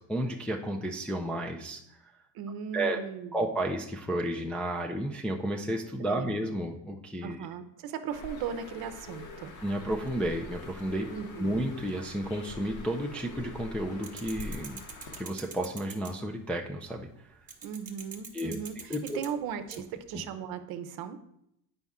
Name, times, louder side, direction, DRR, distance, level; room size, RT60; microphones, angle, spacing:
voice 1, 0.0-2.1 2.7-3.0 3.3-7.4 9.6-11.1 11.4-14.8 15.2-17.1 18.3-19.2, right 1 dB, 5° left, 0 dB, 0.3 m, -32 dB
voice 2, 2.3-3.5 6.1-6.4 7.2-9.5 11.1-11.6 17.6-21.2, right 8 dB, 55° right, 10 dB, 0.8 m, -37 dB
Bird, 8.1-15.2, left 3 dB, 45° left, 1.2 m, -44 dB
sound 1, 9.0-13.1 13.4-16.4 17.5-20.2, right 5 dB, 20° right, 1.0 m, -47 dB
8.0 x 5.3 x 3.6 m, 0.77 s
cardioid pair, 120°, 43 cm